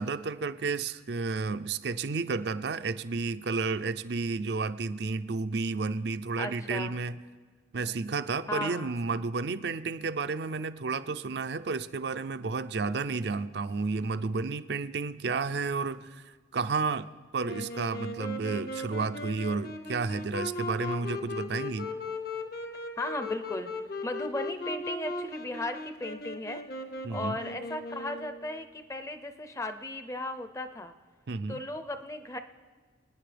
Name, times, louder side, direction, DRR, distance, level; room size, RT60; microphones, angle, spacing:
voice 1, 0.0-7.2 7.7-17.1 17.3-21.9 27.0-27.4 31.3-31.6, right 4 dB, 60° right, 14 dB, 0.5 m, -31 dB
voice 2, 6.4-6.9 8.5-9.1 23.0-23.7 24.0-26.6 27.1-30.9 31.5-32.4, left 2 dB, 15° left, 8 dB, 0.6 m, -36 dB
Wind instrument woodwind instrument, 17.4-28.6, left 2 dB, 50° left, 0.9 m, -38 dB
27.5 x 9.7 x 3.4 m, 1.5 s
head